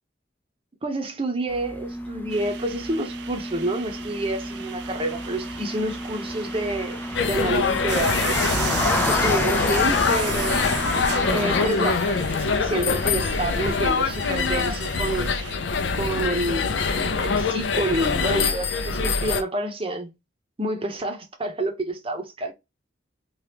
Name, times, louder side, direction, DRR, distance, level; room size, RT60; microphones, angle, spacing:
voice 1, 0.8-8.4 9.1-10.9 11.3-15.3 15.9-20.1 20.6-22.5, right 2 dB, 30° right, 0.7 m, -28 dB
sound 1, 1.5-11.7, left 1 dB, 10° left, 0.4 m, -30 dB
sound 2, 2.3-15.5, right 11 dB, 65° right, 0.3 m, -37 dB
sound 3, 7.1-19.4, left 5 dB, 85° left, 0.5 m, -24 dB
2.9 x 2.4 x 3.2 m
head